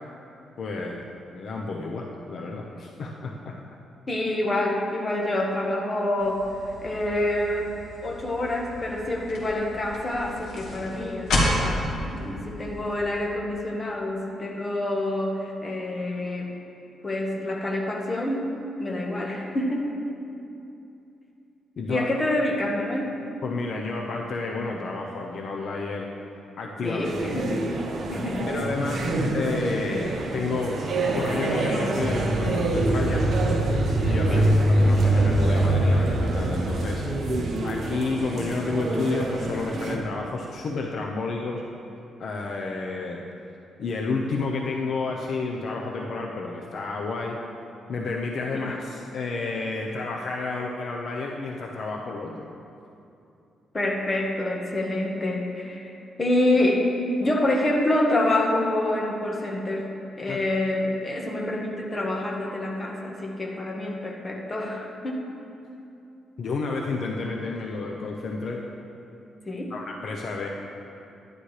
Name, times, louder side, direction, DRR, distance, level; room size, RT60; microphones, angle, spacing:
voice 1, 0.6-1.0 1.3-3.6 21.8-22.1 23.4-26.1 26.6-27.1 28.4-33.3 34.0-34.5 34.8-41.6 42.2-43.2 43.8-47.4 47.9-52.5 60.3-60.4 66.4-68.6 69.7-70.5, left 3 dB, 55° left, 0 dB, 0.8 m, -30 dB
voice 2, 4.1-7.8 8.0-16.5 17.0-18.5 18.8-19.9 21.9-23.2 26.8-27.7 28.1-28.5 29.0-29.1 34.3-34.5 48.5-48.7 53.7-56.9 57.2-59.9 60.2-65.3 69.5-69.7, left 1 dB, 25° left, -1 dB, 1.4 m, -27 dB
sound 1, 6.2-13.2, left 1 dB, 70° left, 2.3 m, -32 dB
sound 2, 27.0-40.0, right 2 dB, 55° right, 1.1 m, -29 dB
sound 3, 32.0-37.5, right 1 dB, 40° right, 1.6 m, -23 dB
11.5 x 11.5 x 3.3 m, 2.7 s
cardioid pair, 140°, 0 cm